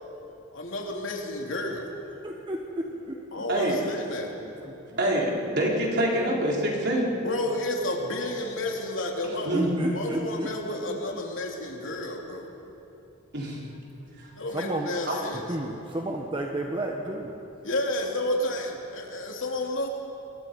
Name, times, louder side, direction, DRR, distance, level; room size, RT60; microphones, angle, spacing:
voice 1, 0.5-1.9 3.3-4.3 7.2-9.6 9.9-12.5 14.3-15.4 17.6-19.9, left 1 dB, 65° left, 0 dB, 3.3 m, -31 dB
voice 2, 2.2-3.3 4.4-5.0 9.5-10.5 10.9-11.0 14.1-14.2 14.5-14.9 15.5-17.3, right 1 dB, 25° right, 1 dB, 1.3 m, -32 dB
voice 3, 3.5-3.8 5.0-7.1 9.5-9.7 13.3-13.6 14.2-14.3 15.1-15.2, right 1 dB, 55° right, -2 dB, 4.2 m, -25 dB
28.5 x 22.5 x 5.4 m, 2.9 s
head